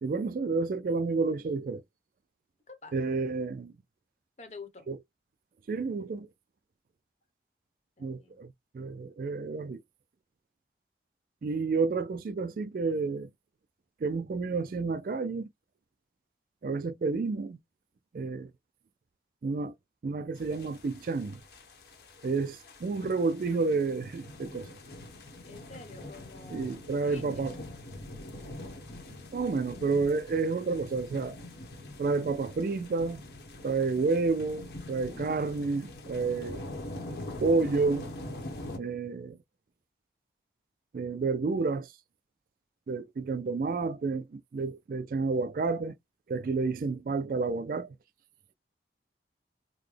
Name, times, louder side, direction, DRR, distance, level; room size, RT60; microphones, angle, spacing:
voice 1, 0.0-1.8 2.9-3.7 4.9-5.0 5.7-6.3 8.0-8.5 8.7-9.8 11.4-13.3 14.0-15.5 16.6-17.6 18.1-18.5 19.4-19.7 20.0-21.4 22.2-24.7 26.5-27.5 29.3-31.4 32.0-33.2 33.6-36.6 37.4-38.1 38.8-39.4 40.9-41.9 42.9-46.0 46.3-48.0, right 4 dB, 50° right, 0.3 m, -30 dB
voice 2, 4.4-4.9 8.0-8.5 25.4-27.5, left 4 dB, 40° left, 1.0 m, -48 dB
sound 1, 20.3-38.8, left 1 dB, 70° left, 1.1 m, -44 dB
3.9 x 2.1 x 3.2 m
head